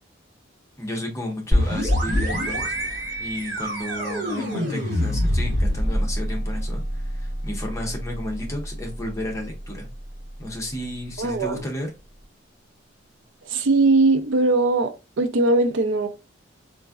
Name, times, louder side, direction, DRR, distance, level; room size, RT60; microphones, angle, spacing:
voice 1, 0.8-2.7 3.2-9.9 10.4-11.9, left 1 dB, 15° left, 0.8 m, -32 dB
sound 1, 1.5-11.1, equal, 50° right, 1.4 m, -26 dB
voice 2, 11.2-11.7 13.4-16.1, right 2 dB, 70° right, 0.5 m, -20 dB
3.9 x 2.5 x 2.3 m
head